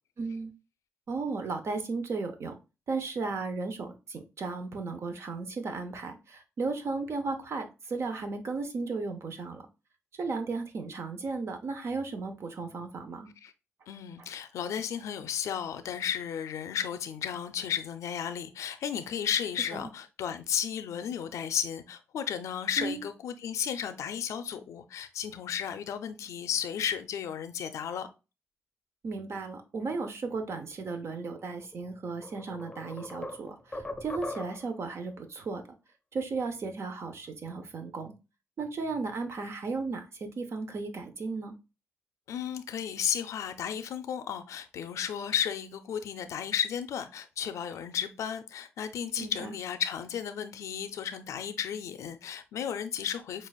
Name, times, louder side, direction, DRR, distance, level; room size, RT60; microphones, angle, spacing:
voice 1, 0.2-0.5 1.1-2.5 2.9-9.7 10.2-13.3 19.7-19.9 22.8-23.0 29.0-35.6 36.1-38.1 38.6-41.5 49.2-49.5, right 4 dB, 60° right, 0.7 m, -35 dB
voice 2, 13.9-28.1 42.3-53.5, left 9 dB, 85° left, 0.5 m, -34 dB
sound 1, 31.6-31.8 32.2-34.8, left 2 dB, 15° left, 0.6 m, -40 dB
6.0 x 2.4 x 2.4 m
cardioid pair, 70°, 5 cm